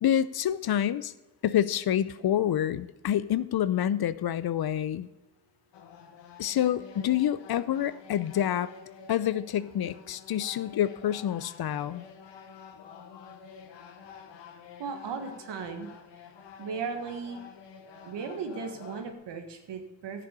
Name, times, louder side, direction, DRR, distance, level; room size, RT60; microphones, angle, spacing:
voice 1, 0.0-1.1 1.4-5.1 6.4-8.7 9.1-12.0, left 10 dB, 65° left, 17 dB, 0.7 m, -27 dB
sound 1, 5.7-19.1, left 6 dB, 85° left, 1.1 m, -49 dB
voice 2, 14.8-15.9 16.6-17.4 18.1-20.3, right 5 dB, 80° right, 6 dB, 1.7 m, -36 dB
13.0 x 6.9 x 6.8 m, 1.1 s
supercardioid pair, 45°, 41 cm